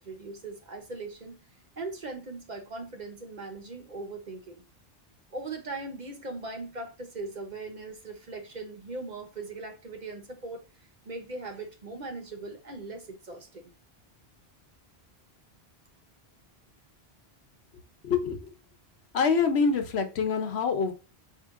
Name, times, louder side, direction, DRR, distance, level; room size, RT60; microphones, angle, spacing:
voice 1, 0.0-1.4 1.8-4.6 5.3-10.6 11.1-13.6, right 3 dB, 45° right, 1.0 m, -39 dB
voice 2, 18.0-18.5 19.1-20.9, left 5 dB, 85° left, 1.1 m, -25 dB
4.8 x 2.8 x 3.6 m
omnidirectional pair, 1.1 m